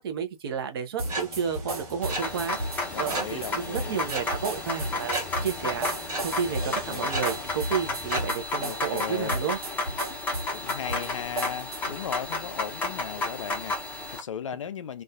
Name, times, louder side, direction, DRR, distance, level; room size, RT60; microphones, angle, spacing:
voice 1, 0.0-2.6 3.0-9.6, right 7 dB, 40° right, 0.6 m, -31 dB
sound 1, 1.0-8.2, right 1 dB, 15° right, 1.2 m, -38 dB
sound 2, 1.0-12.0, right 2 dB, 70° right, 1.0 m, -35 dB
sound 3, 2.0-14.2, left 2 dB, 10° left, 0.6 m, -32 dB
voice 2, 2.9-4.2 6.5-7.2 8.6-9.4 10.2-15.0, left 8 dB, 55° left, 0.4 m, -37 dB
2.4 x 2.3 x 2.3 m
figure-of-eight pair, 120°, 20 cm